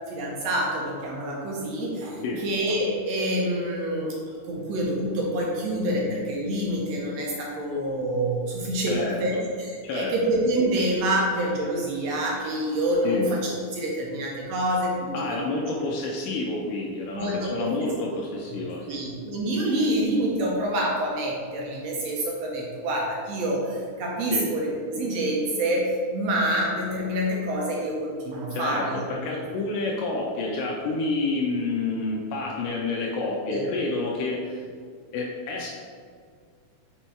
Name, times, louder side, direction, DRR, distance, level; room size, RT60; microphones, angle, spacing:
voice 1, 0.1-4.1 4.4-9.3 9.6-15.6 17.1-17.7 18.9-29.1 33.5-33.6, right 1 dB, 70° right, -2 dB, 1.6 m, -27 dB
voice 2, 8.9-9.4 9.8-10.1 13.0-13.3 15.1-19.0 24.3-24.5 28.5-28.8 29.1-34.6 35.1-35.7, left 3 dB, 90° left, -2 dB, 2.3 m, -29 dB
5.4 x 4.4 x 4.5 m, 2.1 s
omnidirectional pair, 3.7 m